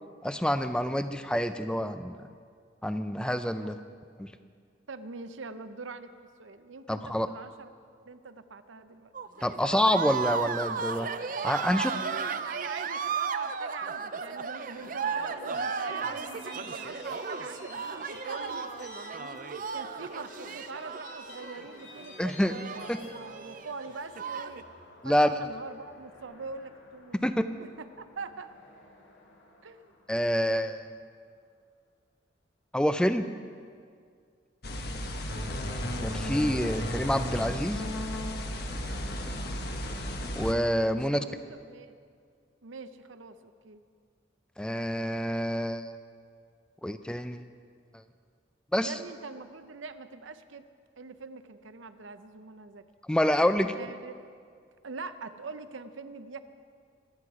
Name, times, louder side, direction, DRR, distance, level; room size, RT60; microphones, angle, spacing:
voice 1, 0.2-2.2 2.8-3.8 4.2-4.3 6.9-7.3 9.4-11.1 11.4-11.9 22.2-22.5 22.9-23.0 25.0-25.4 27.1-27.4 30.1-30.9 32.7-33.3 36.0-37.8 40.4-41.2 44.6-45.9 46.8-47.4 48.7-48.9 53.1-53.7, equal, 5° left, 10 dB, 0.4 m, -27 dB
voice 2, 3.6-4.0 4.9-6.1 6.4-7.7 8.1-9.1 11.7-18.6 19.7-24.7 25.0-28.5 29.6-29.9 35.0-35.6 39.0-39.6 40.9-42.0 42.6-43.8 48.8-50.6 51.0-52.8 53.6-54.3 54.8-56.4, right 4 dB, 80° right, 11 dB, 0.7 m, -43 dB
sound 1, 9.1-24.6, right 5 dB, 45° right, 0.5 m, -35 dB
sound 2, 14.7-30.9, left 2 dB, 70° left, 2.3 m, -51 dB
sound 3, 34.6-40.5, left 1 dB, 55° left, 1.3 m, -34 dB
25.0 x 9.7 x 4.9 m, 2.2 s
head